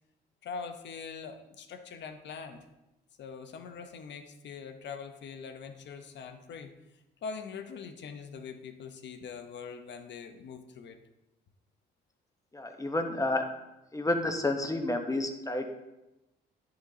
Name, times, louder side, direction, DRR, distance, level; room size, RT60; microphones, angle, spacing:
voice 1, 0.4-2.6 3.2-6.8 7.2-11.0, left 5 dB, 60° left, 7 dB, 0.8 m, -43 dB
voice 2, 12.5-13.4 13.9-15.7, left 2 dB, 15° left, 5 dB, 1.0 m, -30 dB
10.5 x 3.9 x 2.8 m, 0.98 s
supercardioid pair, 65°, 21 cm